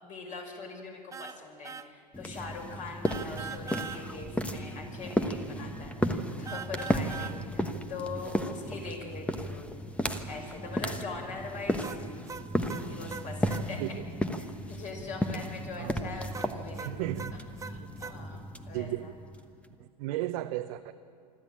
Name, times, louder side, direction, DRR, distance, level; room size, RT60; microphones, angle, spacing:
voice 1, 0.0-9.6 10.3-12.0 12.8-13.8 14.7-19.1, left 3 dB, 35° left, 2 dB, 5.6 m, -42 dB
sound 1, 1.1-1.4 1.6-1.9 3.0-4.0 6.5-7.4 11.8-13.7 16.3-18.2, right 6 dB, 15° right, 0.7 m, -41 dB
sound 2, 2.1-19.7, equal, 5° left, 1.2 m, -34 dB
voice 2, 16.8-17.4 18.7-19.1 19.8-20.9, right 15 dB, 55° right, 6 dB, 0.8 m, -34 dB
24.5 x 13.0 x 8.8 m, 2.2 s
hypercardioid pair, 105°, 21 cm